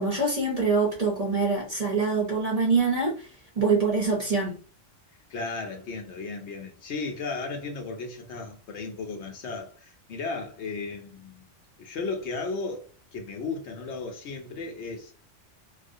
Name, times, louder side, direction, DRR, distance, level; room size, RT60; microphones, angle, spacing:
voice 1, 0.0-3.3 3.6-4.6, right 4 dB, 40° right, 0.6 m, -24 dB
voice 2, 5.3-11.5 11.8-15.1, left 4 dB, 70° left, 0.9 m, -35 dB
2.4 x 2.1 x 2.6 m
omnidirectional pair, 1.3 m